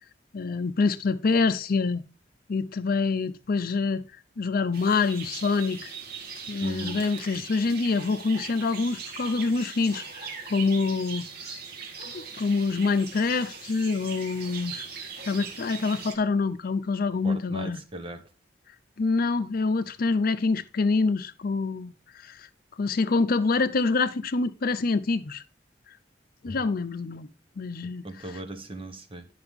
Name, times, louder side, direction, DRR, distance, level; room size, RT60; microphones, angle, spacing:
voice 1, 0.3-2.0 2.5-4.0 4.4-5.9 6.5-11.3 12.1-14.9 15.2-17.8 19.0-21.9 22.2-22.5 22.8-25.4 26.4-27.3 27.6-28.0, left 4 dB, 55° left, 0.5 m, -26 dB
sound 1, 4.7-16.1, right 6 dB, 60° right, 1.6 m, -40 dB
voice 2, 6.6-7.1 17.2-18.2 28.0-29.3, right 2 dB, 30° right, 1.0 m, -38 dB
9.6 x 5.8 x 3.5 m
head